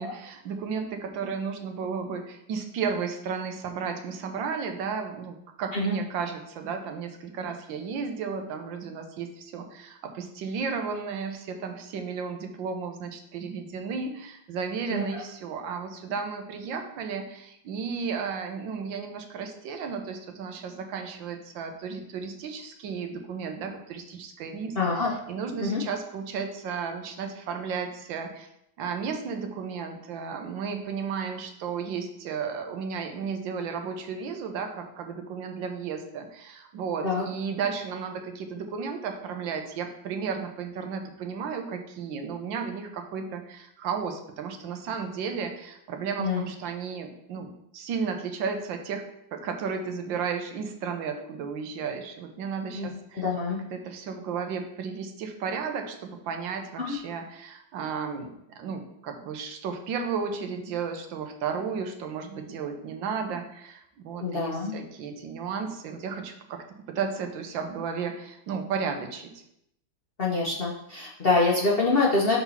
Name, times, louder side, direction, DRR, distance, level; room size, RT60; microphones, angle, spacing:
voice 1, 0.0-28.5 28.8-49.0 49.3-69.4, right 6 dB, 85° right, 5 dB, 1.6 m, -34 dB
voice 2, 14.9-15.2 24.8-25.1 25.6-25.8 37.0-37.2 46.2-46.4 52.7-52.9 53.1-53.6 56.9-57.0 64.2-64.7 70.2-72.4, left 3 dB, 45° left, -3 dB, 0.8 m, -25 dB
5.9 x 4.0 x 5.5 m, 0.78 s
omnidirectional pair, 2.0 m